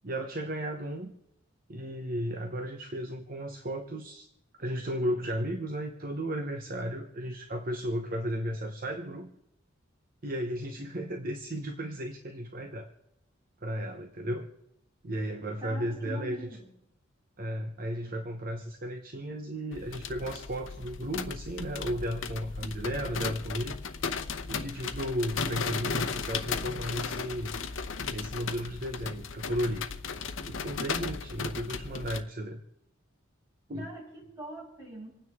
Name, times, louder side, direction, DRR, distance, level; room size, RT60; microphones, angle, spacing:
voice 1, 0.0-1.1 1.7-4.3 4.6-9.3 10.2-12.9 13.6-14.5 15.0-16.5 17.4-23.8 24.5-27.6 28.1-29.9 30.5-32.6 33.7-33.9, equal, 45° right, 5 dB, 1.0 m, -34 dB
voice 2, 15.6-16.7 33.8-35.1, right 2 dB, 20° right, -5 dB, 6.5 m, -43 dB
sound 1, 19.7-32.2, left 5 dB, 75° left, 0.8 m, -36 dB
27.0 x 9.6 x 3.6 m, 0.80 s
head